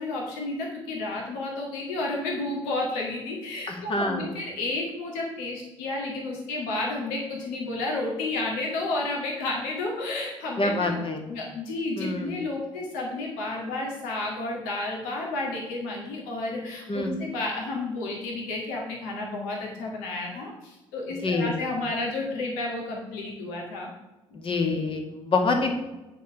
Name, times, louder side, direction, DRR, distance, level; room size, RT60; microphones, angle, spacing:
voice 1, 0.0-11.0 11.3-23.9 24.3-24.4, left 2 dB, 65° left, -1 dB, 2.0 m, -31 dB
voice 2, 3.7-4.4 10.6-11.2 12.0-12.3 16.9-17.1 21.2-21.5 24.4-25.7, left 3 dB, 35° left, 3 dB, 2.0 m, -26 dB
9.1 x 5.2 x 5.9 m, 1.0 s
figure-of-eight pair, 45°, 15 cm